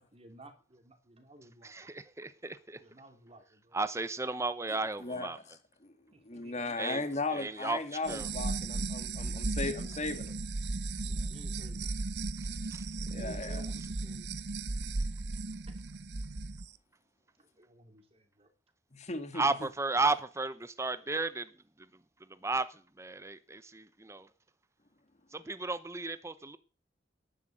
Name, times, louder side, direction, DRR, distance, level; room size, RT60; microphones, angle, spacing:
voice 1, 0.0-1.9 2.8-3.8 6.1-6.8 10.1-10.2 11.0-11.9 13.2-14.4 15.7-15.8 17.4-18.5, right 1 dB, 35° right, 2.9 m, -56 dB
voice 2, 1.6-2.8 3.7-5.4 6.8-8.3 12.7-12.8 19.3-21.5 21.8-21.9 22.3-24.3 25.3-26.6, right 3 dB, 15° right, 0.8 m, -34 dB
voice 3, 5.0-5.3 5.8-5.9 6.3-10.3 13.1-13.6 18.9-19.5, left 3 dB, 40° left, 2.0 m, -36 dB
sound 1, 8.0-16.7, right 3 dB, 70° right, 0.9 m, -36 dB
11.0 x 10.0 x 7.9 m
head